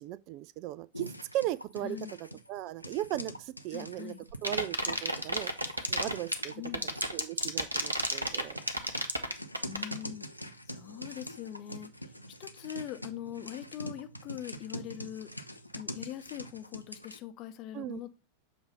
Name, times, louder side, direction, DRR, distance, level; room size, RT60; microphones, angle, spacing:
voice 1, 0.0-2.0 2.5-4.1 4.4-5.5 5.9-6.5 6.8-8.6 17.7-18.0, right 14 dB, 40° right, 0.3 m, -37 dB
sound 1, 0.9-17.2, equal, 90° left, 0.5 m, -45 dB
voice 2, 1.8-2.1 3.7-4.3 6.5-6.9 9.7-10.3 10.6-15.3 15.7-18.1, left 12 dB, 40° left, 0.7 m, -42 dB
sound 2, 4.3-10.0, right 1 dB, 85° right, 0.7 m, -30 dB
7.2 x 2.6 x 5.3 m
figure-of-eight pair, 90°, 0 cm